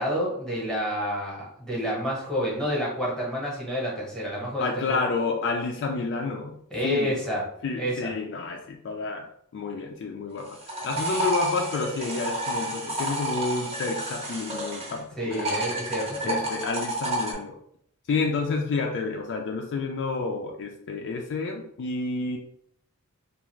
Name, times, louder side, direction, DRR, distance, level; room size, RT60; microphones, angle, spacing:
voice 1, 0.0-5.0 6.7-7.4 7.8-8.1 15.2-16.4, equal, 5° left, -5 dB, 0.9 m, -29 dB
voice 2, 4.6-7.2 7.6-9.3 9.5-15.7 16.2-17.6 18.1-22.4, left 4 dB, 55° left, 2 dB, 0.3 m, -30 dB
sound 1, 10.4-15.0 15.3-17.3, right 1 dB, 25° right, 0.7 m, -30 dB
2.4 x 2.4 x 3.0 m, 0.69 s
head